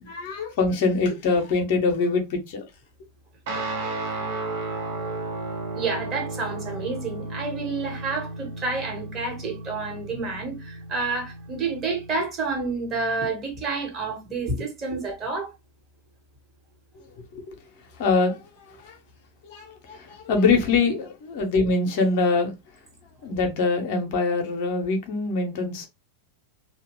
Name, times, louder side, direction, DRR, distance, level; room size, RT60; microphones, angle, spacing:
voice 1, 0.0-2.6 17.3-17.5 18.0-19.0 19.4-22.5 23.2-25.9, left 4 dB, 50° left, 0.7 m, -24 dB
Guitar, 3.5-12.2, right 2 dB, 50° right, 0.7 m, -34 dB
voice 2, 5.7-15.5, right 4 dB, 25° right, 1.2 m, -29 dB
2.8 x 2.2 x 3.0 m
figure-of-eight pair, 90°, 0 cm